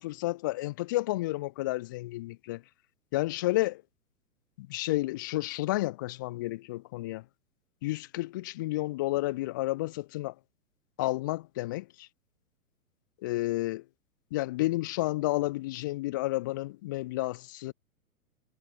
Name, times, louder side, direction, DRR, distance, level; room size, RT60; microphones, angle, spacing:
voice 1, 0.0-2.6 3.1-3.8 4.6-7.2 7.8-10.3 11.0-12.1 13.2-13.8 14.3-17.7, left 18 dB, 15° left, 0.4 m, -31 dB
figure-of-eight pair, 110°, 45 cm